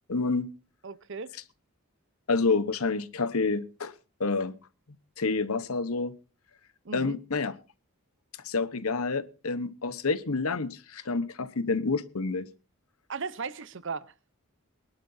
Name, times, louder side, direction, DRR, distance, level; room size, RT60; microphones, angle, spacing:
voice 1, 0.1-0.5 2.3-3.9 4.2-4.5 5.2-6.1 6.9-7.5 8.4-12.4, left 3 dB, 90° left, 1.1 m, -28 dB
voice 2, 0.8-1.3 6.8-7.2 13.1-14.1, right 5 dB, 60° right, 0.8 m, -36 dB
23.5 x 12.0 x 2.7 m
head